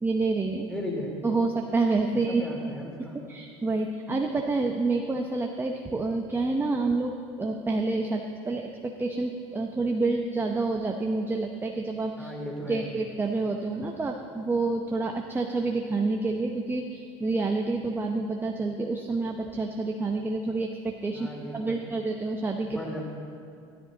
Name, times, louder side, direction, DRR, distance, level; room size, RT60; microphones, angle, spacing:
voice 1, 0.0-0.7 1.2-2.8 3.3-12.3 12.7-22.8, right 3 dB, 15° right, 3 dB, 0.8 m, -28 dB
voice 2, 0.6-1.1 2.1-3.2 12.2-12.9 21.1-21.8 22.6-23.0, left 1 dB, 5° left, -2 dB, 3.3 m, -37 dB
13.5 x 13.0 x 4.0 m, 2.4 s
hypercardioid pair, 75°, 15 cm